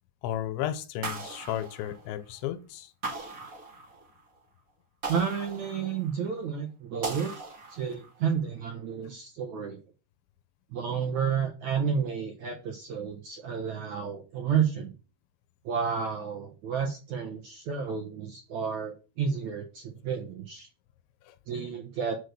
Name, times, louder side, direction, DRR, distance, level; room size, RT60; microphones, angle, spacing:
voice 1, 0.2-2.9 21.3-21.4, left 11 dB, 85° left, 3.1 m, -33 dB
sound 1, 1.0-2.4 3.0-4.2 5.0-6.3 7.0-8.2, right 3 dB, 45° right, 1.0 m, -39 dB
voice 2, 5.1-7.3 7.7-9.8 10.7-14.9 15.6-20.7 21.5-22.2, right 7 dB, 65° right, 1.9 m, -31 dB
7.7 x 6.6 x 6.4 m
omnidirectional pair, 5.1 m